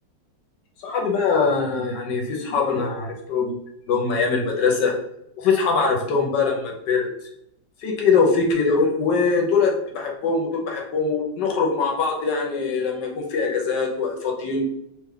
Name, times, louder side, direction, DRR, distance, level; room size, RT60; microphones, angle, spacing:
voice 1, 0.8-3.5 3.9-4.9 5.4-7.1 7.8-14.6, left 4 dB, 70° left, 0 dB, 1.3 m, -22 dB
3.3 x 2.3 x 3.5 m, 0.78 s
omnidirectional pair, 2.0 m